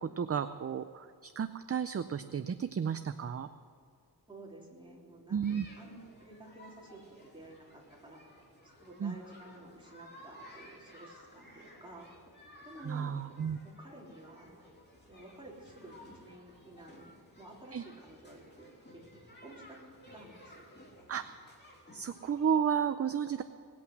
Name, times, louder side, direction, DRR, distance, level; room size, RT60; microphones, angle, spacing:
voice 1, 0.0-3.5 5.3-5.7 9.0-9.2 12.8-13.6 17.7-17.8 21.1-21.3 21.9-23.4, right 7 dB, 40° right, 10 dB, 0.5 m, -33 dB
voice 2, 4.3-5.4 5.8-13.2 13.6-14.6 15.1-19.0 19.4-19.8 20.1-20.7, right 1 dB, 15° right, -4 dB, 3.5 m, -52 dB
sound 1, 5.4-22.6, left 1 dB, 25° left, 3.0 m, -56 dB
19.0 x 8.6 x 8.0 m, 2.3 s
wide cardioid pair, 120°, 39 cm